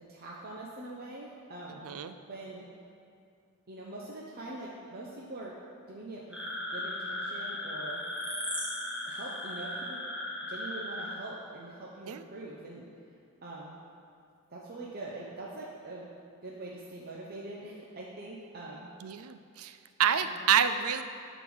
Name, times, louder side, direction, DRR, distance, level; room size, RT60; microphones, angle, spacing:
voice 1, 0.1-1.9 2.3-2.7 3.7-5.6 5.9-6.4 6.7-8.0 9.0-10.0 10.5-12.9 13.4-13.7 14.5-16.0 16.4-18.9 20.2-20.4, right 2 dB, 45° right, -4 dB, 0.9 m, -43 dB
voice 2, 1.7-2.1 12.1-12.2 19.0-21.0, right 8 dB, 65° right, 11 dB, 0.5 m, -28 dB
sound 1, 6.3-11.1, left 1 dB, 5° right, 1.6 m, -36 dB
10.5 x 4.1 x 6.2 m, 2.6 s
head